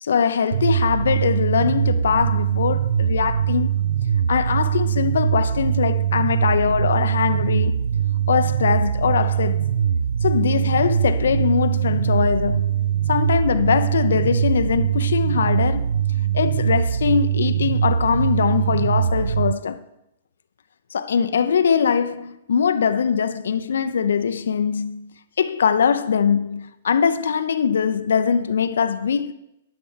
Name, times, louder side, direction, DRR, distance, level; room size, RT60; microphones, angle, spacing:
voice 1, 0.0-3.7 4.3-7.7 8.3-9.7 10.2-12.8 13.1-15.9 16.3-19.8 20.9-25.1 25.4-29.3, left 6 dB, 65° left, 0.5 m, -22 dB
sound 1, 0.5-19.5, right 9 dB, 65° right, 0.4 m, -22 dB
11.0 x 6.0 x 7.3 m
figure-of-eight pair, 110°, 0 cm